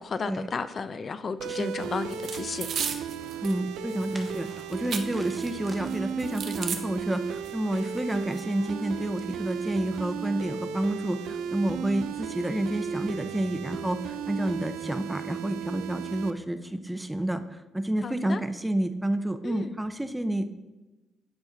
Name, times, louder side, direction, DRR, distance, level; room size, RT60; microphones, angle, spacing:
voice 1, 0.0-2.7 18.0-18.4 19.4-19.8, left 5 dB, 45° left, 11 dB, 0.4 m, -33 dB
sound 1, 1.4-16.3, right 7 dB, 90° right, 0.4 m, -35 dB
voice 2, 1.5-1.9 3.4-20.5, right 1 dB, 10° right, 10 dB, 0.5 m, -29 dB
sound 2, 2.1-3.6 3.9-5.5 5.9-6.8 7.5-7.6 7.8-8.4, right 6 dB, 60° right, 0.8 m, -35 dB
sound 3, 3.2-10.3, equal, 10° left, 1.1 m, -53 dB
9.8 x 4.2 x 3.9 m, 1.1 s
cardioid pair, 90°, 0 cm